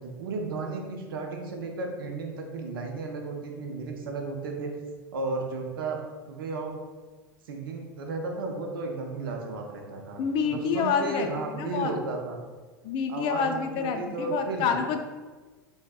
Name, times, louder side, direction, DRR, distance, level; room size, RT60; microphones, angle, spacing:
voice 1, 0.0-4.7 5.1-6.0 6.3-6.7 7.5-12.4 13.1-14.7, right 3 dB, 75° right, 2 dB, 0.5 m, -34 dB
voice 2, 10.2-11.3 11.6-11.9 12.8-15.0, left 6 dB, 50° left, 5 dB, 0.4 m, -27 dB
5.0 x 2.1 x 2.4 m, 1.3 s
hypercardioid pair, 85°, 12 cm